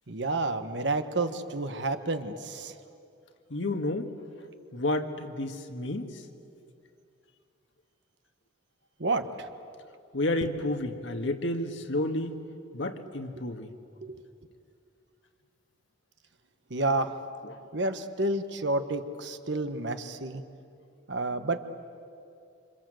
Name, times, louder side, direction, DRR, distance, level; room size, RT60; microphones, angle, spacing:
voice 1, 0.1-2.7 9.0-9.5 14.0-14.2 16.7-17.1 17.7-20.4 21.1-21.6, right 2 dB, 65° right, 8 dB, 1.3 m, -30 dB
voice 2, 3.5-4.1 4.7-6.1 10.1-12.4 12.7-13.7 17.4-17.6, left 1 dB, 70° left, 5 dB, 1.8 m, -31 dB
27.5 x 26.5 x 7.9 m, 2.5 s
head